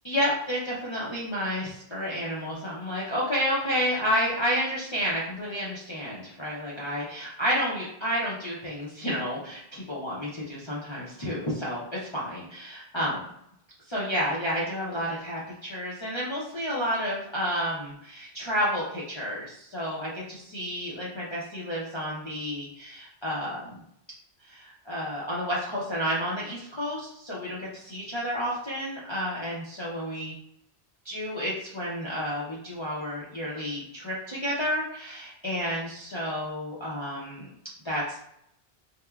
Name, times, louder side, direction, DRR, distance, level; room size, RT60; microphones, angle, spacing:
voice 1, 0.0-11.8 12.1-13.2 13.9-23.8 24.5-30.3 31.0-37.5 37.8-38.2, equal, 35° left, -8 dB, 0.5 m, -30 dB
2.9 x 2.1 x 2.3 m, 0.73 s
omnidirectional pair, 1.1 m